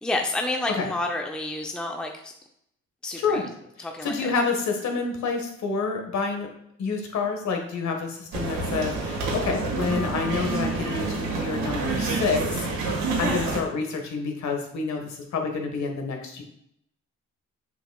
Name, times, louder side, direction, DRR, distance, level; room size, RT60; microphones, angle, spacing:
voice 1, 0.0-2.3 3.0-3.5 3.8-4.3, left 2 dB, 5° left, 2 dB, 0.6 m, -29 dB
voice 2, 4.0-6.5 6.8-12.4 12.7-16.4, left 4 dB, 65° left, 3 dB, 1.5 m, -28 dB
sound 1, 8.3-13.6, right 3 dB, 85° right, 1.8 m, -28 dB
6.9 x 6.0 x 2.3 m, 0.74 s
cardioid pair, 90°, 30 cm